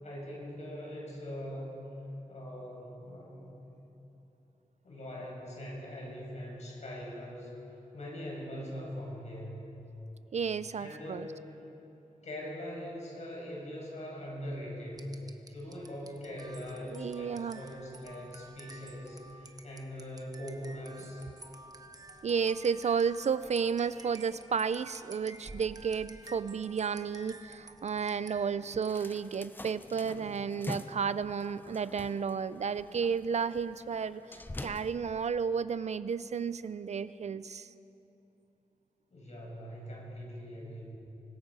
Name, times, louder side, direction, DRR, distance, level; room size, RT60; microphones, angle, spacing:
voice 1, 0.0-1.8 2.3-3.5 4.8-7.6 7.9-9.6 10.8-11.4 12.2-15.1 15.5-21.2 39.1-41.0, equal, 55° left, -2 dB, 5.9 m, -42 dB
voice 2, 10.3-11.3 16.9-17.6 22.2-37.7, right 6 dB, 55° right, 15 dB, 0.4 m, -32 dB
sound 1, 14.9-29.4, right 2 dB, 25° right, 1.0 m, -52 dB
sound 2, 28.9-34.9, left 1 dB, 15° left, 0.7 m, -45 dB
25.0 x 19.5 x 5.4 m, 2.9 s
wide cardioid pair, 155°, 14 cm